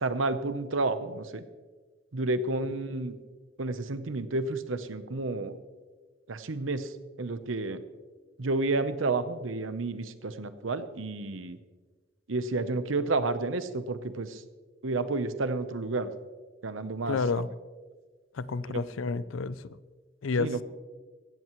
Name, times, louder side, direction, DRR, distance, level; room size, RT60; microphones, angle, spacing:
voice 1, 0.0-1.4 2.1-3.2 3.6-5.6 6.3-6.9 7.2-7.8 8.4-11.6 12.3-14.4 14.8-16.1 16.6-17.4 18.7-18.8 20.4-20.6, right 3 dB, 85° right, 0.9 m, -30 dB
voice 2, 17.1-17.5 18.3-19.8 20.2-20.5, left 4 dB, 85° left, 0.5 m, -30 dB
16.5 x 14.0 x 3.1 m
head